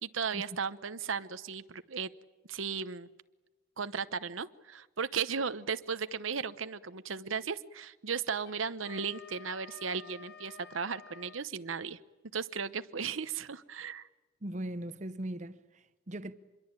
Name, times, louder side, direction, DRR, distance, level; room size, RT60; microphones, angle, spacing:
voice 1, 0.0-2.1 2.5-3.1 3.8-12.0 12.3-14.1, right 6 dB, 85° right, 0.9 m, -36 dB
Wind instrument woodwind instrument, 8.4-11.5, left 6 dB, 50° left, 0.9 m, -51 dB
voice 2, 14.4-16.3, right 1 dB, 35° right, 0.9 m, -39 dB
26.5 x 22.5 x 9.0 m
head